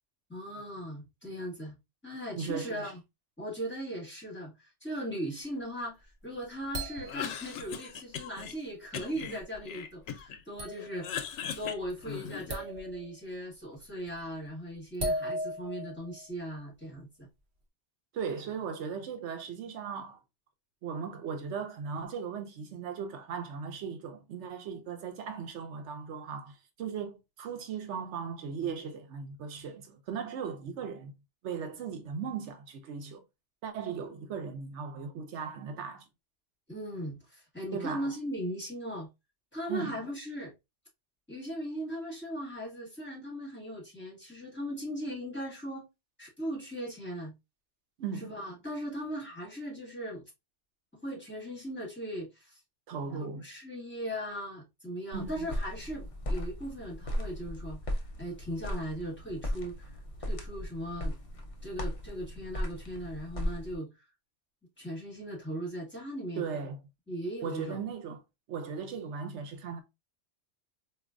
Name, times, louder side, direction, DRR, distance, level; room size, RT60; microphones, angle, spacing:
voice 1, 0.3-1.8 2.0-3.0 3.4-11.3 11.6-17.3 36.7-39.1 39.5-40.5 41.3-45.9 46.2-47.3 48.2-50.2 51.0-52.6 53.2-57.8 58.2-59.9 60.2-61.2 61.6-63.9 64.8-66.4 67.1-67.8, equal, 10° left, 1.5 m, -38 dB
voice 2, 2.4-2.9 18.1-20.2 20.8-31.1 31.4-33.2 33.6-36.1 37.7-38.1 39.7-40.0 48.0-48.3 52.9-53.4 55.1-55.5 66.4-66.8 67.4-68.2 68.5-69.8, right 6 dB, 80° right, 0.9 m, -37 dB
sound 1, 6.0-7.8 8.4-8.6 9.0-9.6 10.1-10.2 10.6-11.3 11.5-11.9 12.5-13.2 13.8-14.2 14.9-16.3, equal, 50° right, 0.9 m, -37 dB
Cough, 7.0-8.5 8.9-10.4 10.7-12.6, left 8 dB, 80° left, 0.9 m, -39 dB
sound 2, 55.1-63.8, equal, 40° left, 0.6 m, -37 dB
4.1 x 2.5 x 2.4 m
omnidirectional pair, 1.2 m